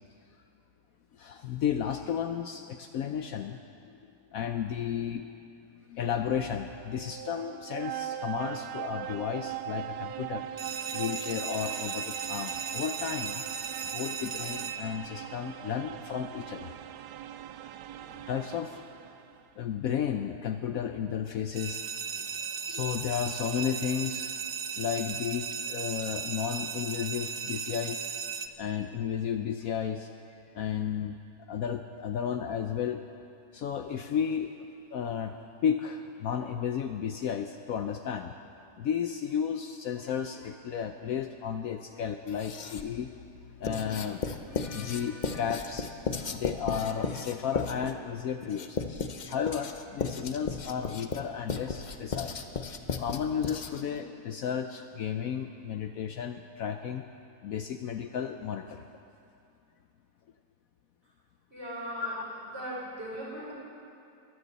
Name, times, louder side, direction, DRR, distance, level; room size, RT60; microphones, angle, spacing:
voice 1, 1.1-4.0 4.3-5.3 5.7-10.5 10.9-13.4 13.9-16.7 18.1-18.8 19.6-21.8 22.2-22.4 22.7-24.3 24.8-28.1 28.6-30.1 30.5-31.2 31.5-33.0 33.5-34.5 34.9-35.3 35.6-38.3 38.8-43.1 43.6-45.9 46.3-52.4 53.0-57.0 57.4-58.9 61.9-62.2, left 8 dB, 65° left, 7 dB, 1.0 m, -33 dB
sound 1, 6.6-19.4, right 11 dB, 80° right, 1.1 m, -40 dB
sound 2, 10.6-15.4 21.5-28.5, right 6 dB, 65° right, 0.5 m, -36 dB
Writing, 42.3-43.0 43.6-54.0, left 5 dB, 50° left, 0.5 m, -35 dB
voice 2, 61.5-62.2 62.5-63.5, right 1 dB, 40° right, -6 dB, 5.4 m, -38 dB
22.0 x 16.0 x 4.1 m, 2.5 s
omnidirectional pair, 1.7 m